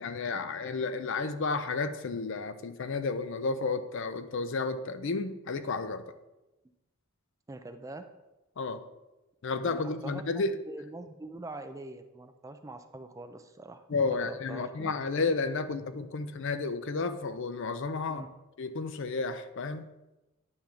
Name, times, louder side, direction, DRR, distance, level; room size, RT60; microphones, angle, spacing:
voice 1, 0.0-6.0 8.6-8.8 9.4-10.6 13.9-18.2 18.6-19.9, left 4 dB, 55° left, 11 dB, 0.5 m, -32 dB
voice 2, 7.5-8.1 9.6-10.2 10.7-13.8 14.1-14.9 18.1-18.3, right 2 dB, 15° right, 8 dB, 0.3 m, -43 dB
9.6 x 3.5 x 5.9 m, 1.0 s
head